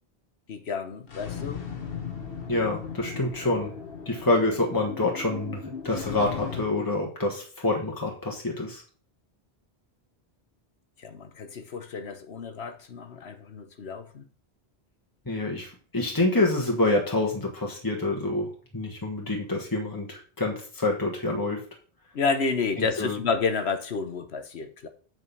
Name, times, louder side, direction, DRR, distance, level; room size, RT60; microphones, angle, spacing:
voice 1, 0.5-1.6 11.0-14.3 22.1-24.9, left 4 dB, 80° left, 1.3 m, -30 dB
sound 1, 1.0-6.7, left 6 dB, 65° left, 1.4 m, -37 dB
voice 2, 2.5-3.7 4.0-8.8 15.3-21.6 22.8-23.2, left 2 dB, 20° left, 1.5 m, -27 dB
7.9 x 5.2 x 5.6 m
omnidirectional pair, 1.1 m